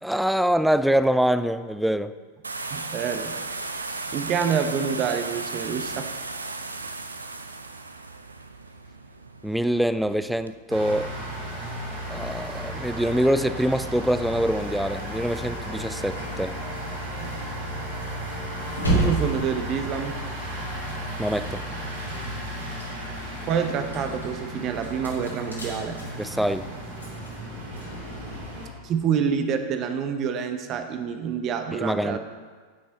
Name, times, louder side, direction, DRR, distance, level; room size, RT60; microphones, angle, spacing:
voice 1, 0.0-2.1 9.4-11.1 12.1-16.6 21.2-21.6 26.2-26.7 31.7-32.2, equal, ahead, 13 dB, 0.4 m, -24 dB
sound 1, 2.4-10.6, right 3 dB, 80° right, 0.6 m, -36 dB
voice 2, 2.7-3.7 4.1-6.1 17.2-17.3 18.9-20.2 23.4-26.0 28.8-32.2, right 7 dB, 35° right, 7 dB, 0.8 m, -27 dB
sound 2, 10.7-28.7, equal, 60° right, 2.6 m, -34 dB
sound 3, 18.7-21.7 22.0-28.4, right 2 dB, 85° left, 2.5 m, -32 dB
13.5 x 6.2 x 4.1 m, 1.5 s
figure-of-eight pair, 90°, 0 cm